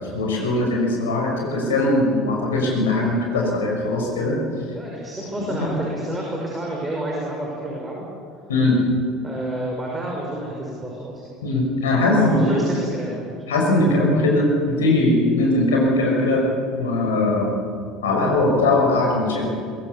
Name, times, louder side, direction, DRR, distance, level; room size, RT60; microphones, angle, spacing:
voice 1, 0.1-4.4 5.2-5.7 8.5-8.9 11.4-12.5 13.5-16.4 16.7-17.5 18.0-19.5, left 2 dB, 75° left, 0 dB, 6.1 m, -20 dB
voice 2, 4.7-8.1 9.2-11.3 12.1-13.2, right 1 dB, 15° right, -2 dB, 5.6 m, -29 dB
23.0 x 22.0 x 7.2 m, 2.4 s
figure-of-eight pair, 65°, 0 cm